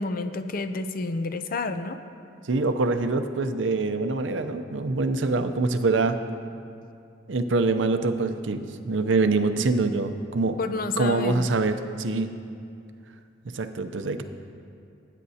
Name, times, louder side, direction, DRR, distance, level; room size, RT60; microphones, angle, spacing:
voice 1, 0.0-2.0 10.6-11.5, left 3 dB, 50° left, 9 dB, 0.5 m, -29 dB
voice 2, 2.4-6.2 7.3-10.6 11.0-12.3 13.5-14.2, right 3 dB, 85° right, 8 dB, 0.6 m, -25 dB
19.5 x 9.2 x 2.8 m, 2.5 s
head